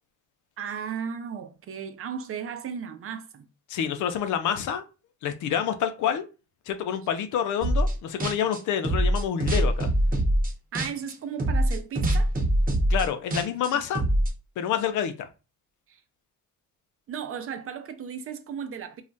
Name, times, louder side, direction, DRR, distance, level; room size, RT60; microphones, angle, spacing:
voice 1, 0.6-3.5 10.7-12.3 15.9-16.0 17.1-19.0, right 7 dB, 50° right, 0.5 m, -35 dB
voice 2, 3.7-4.8 5.2-6.2 6.7-9.9 12.9-14.0 14.6-15.3, left 9 dB, 75° left, 0.5 m, -27 dB
sound 1, 7.6-7.9 8.2-11.1 11.4-14.3, right 1 dB, 30° right, 0.9 m, -23 dB
2.4 x 2.1 x 3.8 m
cardioid pair, 90°, 30 cm